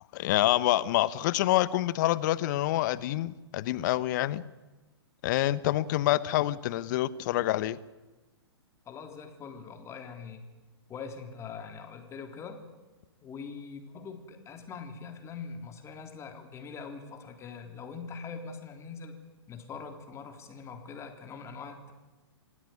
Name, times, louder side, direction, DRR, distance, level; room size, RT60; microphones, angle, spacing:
voice 1, 0.1-4.4 5.2-7.8, left 15 dB, 45° left, 17 dB, 1.1 m, -27 dB
voice 2, 8.8-10.4 10.9-12.7 13.2-19.2 19.5-21.9, left 5 dB, 20° left, 5 dB, 3.4 m, -43 dB
25.5 x 16.5 x 9.8 m, 1.2 s
figure-of-eight pair, 120°, 14 cm